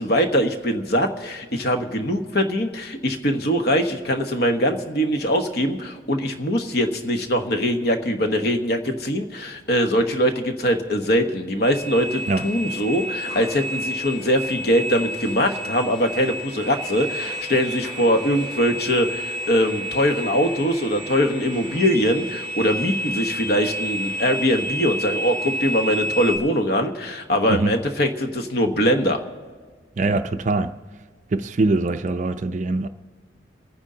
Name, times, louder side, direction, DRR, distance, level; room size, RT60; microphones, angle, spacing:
voice 1, 0.0-29.2, equal, 55° left, 1.2 m, -22 dB
sound 1, 11.6-26.4, right 1 dB, 30° left, 2.7 m, -31 dB
voice 2, 30.0-30.7 31.3-32.9, right 2 dB, 40° right, 0.4 m, -22 dB
27.5 x 9.7 x 3.8 m
head